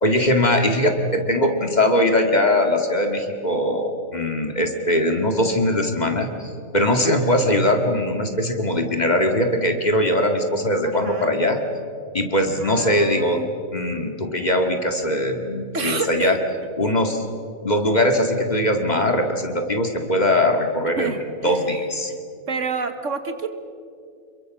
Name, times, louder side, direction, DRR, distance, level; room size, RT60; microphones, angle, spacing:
voice 1, 0.0-11.6 12.1-13.4 13.7-16.4 16.8-17.2 17.6-21.1 21.4-22.1, left 1 dB, 30° left, 4 dB, 2.1 m, -21 dB
voice 2, 12.6-13.5 15.7-16.4 21.0-21.6 22.5-23.5, right 5 dB, 60° right, 8 dB, 1.7 m, -28 dB
28.0 x 22.5 x 6.4 m, 2.4 s
omnidirectional pair, 1.5 m